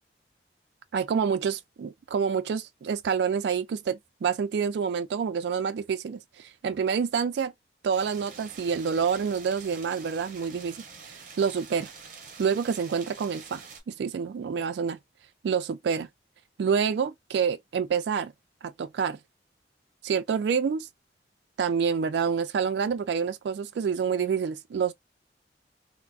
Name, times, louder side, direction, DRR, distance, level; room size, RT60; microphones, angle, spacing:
voice 1, 0.9-7.5 7.8-10.8 11.4-11.9 12.4-15.0 15.4-16.1 16.6-18.3 18.6-19.2 20.0-20.9 21.6-24.9, right 6 dB, 75° right, 0.3 m, -27 dB
sound 1, 7.9-13.8, right 5 dB, 45° right, 0.7 m, -46 dB
3.4 x 2.0 x 2.3 m
head